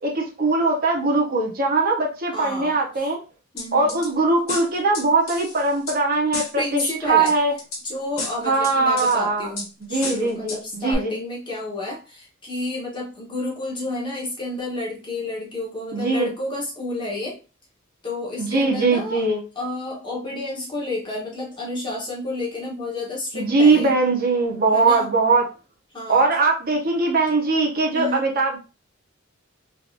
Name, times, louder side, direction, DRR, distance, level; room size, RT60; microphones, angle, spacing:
voice 1, 0.0-3.2 3.7-7.5 8.4-9.5 9.9-11.1 15.9-16.3 18.4-19.4 23.3-25.5 26.1-28.6, right 3 dB, 45° right, 0 dB, 0.8 m, -21 dB
voice 2, 2.3-2.8 3.5-4.0 6.6-7.3 7.8-17.4 18.0-19.2 19.5-23.9 24.7-25.1 25.9-26.3 27.9-28.3, left 2 dB, 20° left, -4 dB, 1.1 m, -30 dB
sound 1, 3.6-4.1 4.5-6.0 6.3-6.9 7.3-7.8 8.2-9.2 9.6-9.7 10.0-10.6 10.9-11.0, left 3 dB, 70° left, 1.1 m, -32 dB
3.5 x 2.8 x 2.5 m, 0.32 s
head